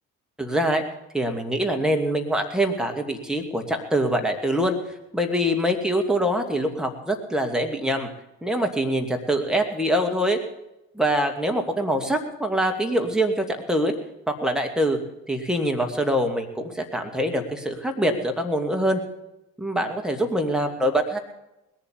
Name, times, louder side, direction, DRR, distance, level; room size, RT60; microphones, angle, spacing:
voice 1, 0.4-0.8 1.1-4.8 5.1-8.1 8.4-10.4 10.9-13.9 14.3-15.0 15.3-19.0 19.6-21.2, equal, ahead, 3 dB, 2.4 m, -24 dB
19.5 x 7.5 x 8.7 m, 0.91 s
figure-of-eight pair, 45°, 43 cm